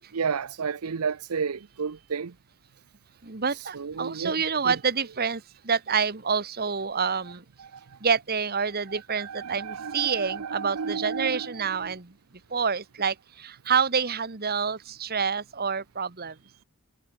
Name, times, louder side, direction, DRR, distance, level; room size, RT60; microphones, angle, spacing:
voice 1, 0.1-2.3 3.7-4.3 4.6-4.7 7.6-7.8 9.2-11.5 11.8-11.9, right 6 dB, 80° right, 0.7 m, -32 dB
voice 2, 3.2-7.4 8.0-12.2 12.5-16.4, right 6 dB, 45° right, 1.4 m, -27 dB
head